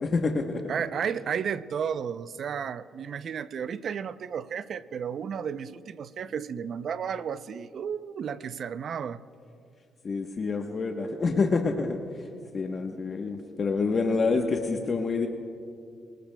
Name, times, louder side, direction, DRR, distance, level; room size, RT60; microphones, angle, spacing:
voice 1, 0.0-0.7 10.0-12.0 12.5-15.3, left 4 dB, 45° left, 3 dB, 1.0 m, -27 dB
voice 2, 0.7-9.2, right 7 dB, 60° right, 14 dB, 0.5 m, -33 dB
25.0 x 19.0 x 2.2 m, 2.4 s
cardioid pair, 90°, 0 cm